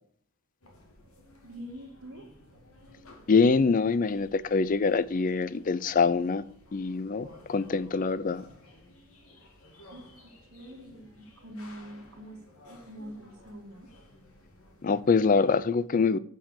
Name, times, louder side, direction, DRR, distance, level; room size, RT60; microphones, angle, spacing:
sound 1, 0.6-15.6, left 1 dB, 80° left, 2.3 m, -55 dB
voice 1, 1.4-2.3 9.9-12.4 12.7-13.9, equal, 75° right, 2.0 m, -45 dB
voice 2, 3.3-6.4 6.7-8.4 14.8-16.2, left 4 dB, 35° left, 0.4 m, -24 dB
8.9 x 5.5 x 6.5 m
head